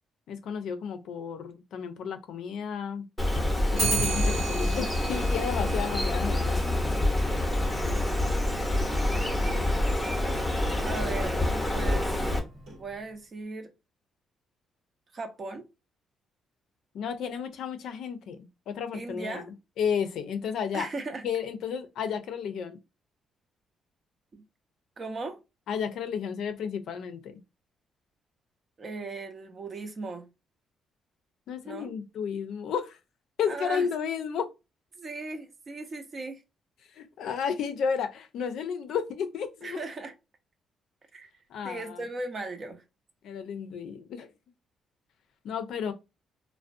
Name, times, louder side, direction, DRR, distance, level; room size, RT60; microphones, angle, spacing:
voice 1, 0.3-3.1 3.7-6.6 16.9-18.4 18.7-20.9 21.2-22.8 25.7-27.4 31.5-33.0 33.4-34.5 37.0-39.8 41.5-42.0 43.2-44.3 45.4-45.9, left 7 dB, 75° left, 0.4 m, -32 dB
Bird, 3.2-12.4, left 1 dB, 5° left, 0.7 m, -27 dB
Clock, 3.8-13.1, right 3 dB, 85° right, 1.0 m, -37 dB
voice 2, 10.8-11.4 11.7-12.2 12.8-13.7 15.1-15.6 18.9-19.5 20.7-21.3 24.3-24.4 25.0-25.4 28.8-30.3 31.6-31.9 33.5-33.9 35.0-36.4 39.6-40.1 41.1-41.3 41.6-42.8, right 3 dB, 45° right, 0.6 m, -37 dB
2.4 x 2.1 x 2.5 m
cardioid pair, 90°, 0 cm